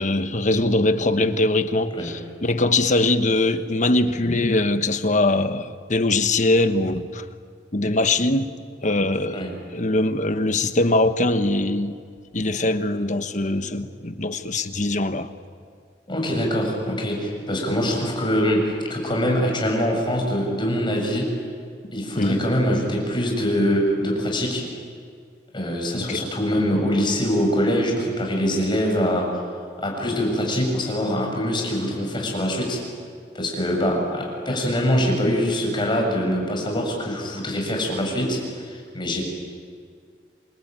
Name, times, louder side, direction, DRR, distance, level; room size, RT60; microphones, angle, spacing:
voice 1, 0.0-7.3 7.7-8.5 8.8-12.0 12.3-15.3 22.1-22.4 25.9-26.2, left 2 dB, 45° left, 1.2 m, -22 dB
voice 2, 16.1-21.3 21.9-24.6 25.5-29.4 29.8-32.8 33.3-39.2, equal, 30° left, 6.9 m, -23 dB
28.0 x 23.5 x 9.0 m
head